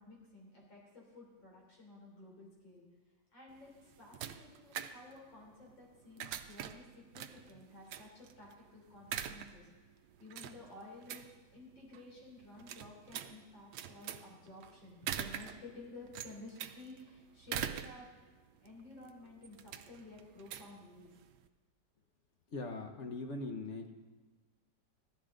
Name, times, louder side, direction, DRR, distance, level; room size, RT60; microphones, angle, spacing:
voice 1, 0.0-2.9 3.3-9.7 10.2-18.1 18.6-21.1, left 2 dB, 80° left, -3 dB, 4.1 m, -53 dB
sound 1, 3.5-21.5, right 10 dB, 70° right, 1.1 m, -45 dB
voice 2, 22.5-23.9, left 3 dB, 50° left, 4 dB, 1.0 m, -41 dB
15.5 x 12.5 x 3.8 m, 1.4 s
omnidirectional pair, 2.0 m